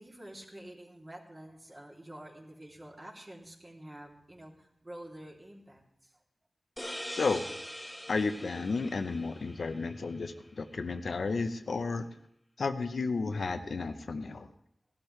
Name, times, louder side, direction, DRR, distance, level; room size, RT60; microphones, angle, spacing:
voice 1, 0.0-6.1, right 1 dB, 35° right, -3 dB, 3.0 m, -48 dB
sound 1, 6.8-10.2, equal, 5° left, 1.4 m, -43 dB
voice 2, 7.2-7.5 8.1-12.0 12.6-14.5, left 4 dB, 75° left, 7 dB, 0.8 m, -32 dB
17.5 x 12.0 x 3.3 m, 0.73 s
wide cardioid pair, 75°, 0 cm